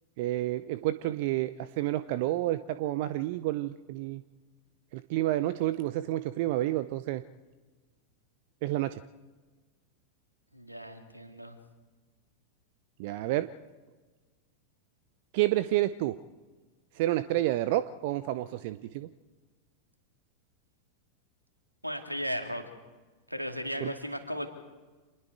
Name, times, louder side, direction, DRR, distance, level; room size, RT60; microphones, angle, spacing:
voice 1, 0.2-4.2 4.9-7.2 8.6-9.0 13.0-13.5 15.3-16.2 16.9-19.1 23.8-23.9, right 15 dB, 50° right, 14 dB, 0.6 m, -29 dB
voice 2, 10.5-11.6 21.8-22.7 23.3-24.5, equal, 90° right, 5 dB, 2.3 m, -36 dB
27.5 x 20.5 x 4.7 m, 1.3 s
figure-of-eight pair, 90°, 0 cm